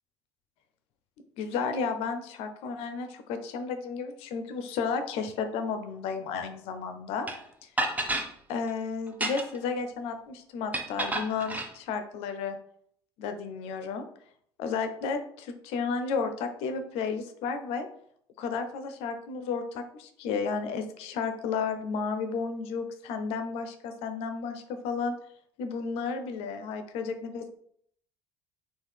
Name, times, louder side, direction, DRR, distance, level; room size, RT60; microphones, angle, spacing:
voice 1, 1.4-7.3 7.6-7.7 8.5-12.6 13.2-14.1 14.6-17.9 18.4-25.1 25.6-27.5, left 5 dB, 55° left, 7 dB, 0.5 m, -32 dB
sound 1, 7.3-7.4 7.8-8.3 9.1-9.6 10.7-11.7, right 1 dB, 10° right, 0.6 m, -30 dB
3.9 x 2.3 x 3.4 m, 0.66 s
figure-of-eight pair, 55°, 13 cm